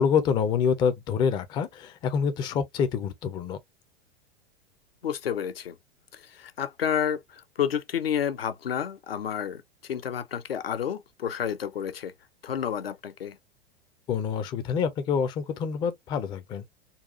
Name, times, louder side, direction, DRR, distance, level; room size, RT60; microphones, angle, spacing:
voice 1, 0.0-3.6 14.1-16.6, left 7 dB, 15° left, 0.4 m, -26 dB
voice 2, 5.0-5.8 6.1-9.6 9.9-12.1 12.4-13.4, left 8 dB, 75° left, 0.5 m, -30 dB
4.0 x 2.3 x 2.4 m
figure-of-eight pair, 90°, 30 cm